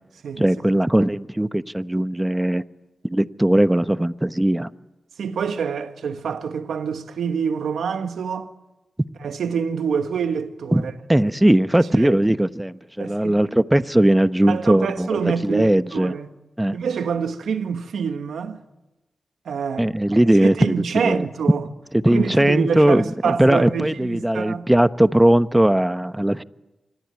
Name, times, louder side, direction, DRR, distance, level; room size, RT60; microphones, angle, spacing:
voice 1, 0.4-2.6 3.0-4.7 10.7-10.8 11.1-16.2 16.6-16.8 19.8-21.3 21.9-26.4, right 1 dB, 15° right, 1.1 m, -19 dB
voice 2, 5.2-8.5 9.2-10.9 12.0-12.1 13.0-13.4 14.5-16.3 16.7-18.6 19.4-19.8 20.4-21.7 22.1-24.7, right 6 dB, 85° right, 1.5 m, -26 dB
26.0 x 23.5 x 9.8 m
cardioid pair, 45°, 0 cm